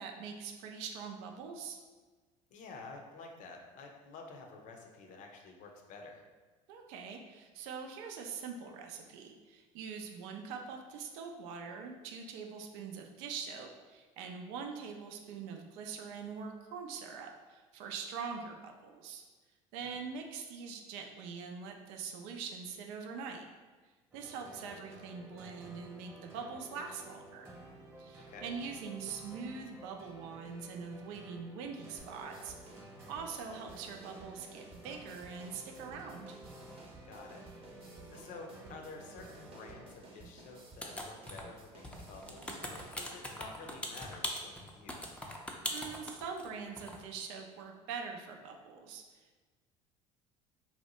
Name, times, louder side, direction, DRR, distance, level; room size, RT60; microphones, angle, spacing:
voice 1, 0.0-1.8 6.7-19.2 19.7-23.4 24.1-27.5 28.0-32.6 33.1-36.4 45.7-49.4, right 5 dB, 75° right, 3 dB, 0.4 m, -43 dB
voice 2, 2.5-6.2 19.8-20.0 28.2-28.6 37.0-37.4 37.9-45.2, left 3 dB, 55° left, 2 dB, 0.6 m, -50 dB
sound 1, 24.1-39.9, right 1 dB, 15° right, 1.0 m, -53 dB
sound 2, 32.0-42.9, right 2 dB, 35° right, 0.7 m, -55 dB
sound 3, 40.8-41.6 41.8-46.5 46.8-47.0, left 1 dB, 10° left, 0.5 m, -40 dB
2.7 x 2.1 x 4.1 m, 1.4 s
hypercardioid pair, 75°, 15 cm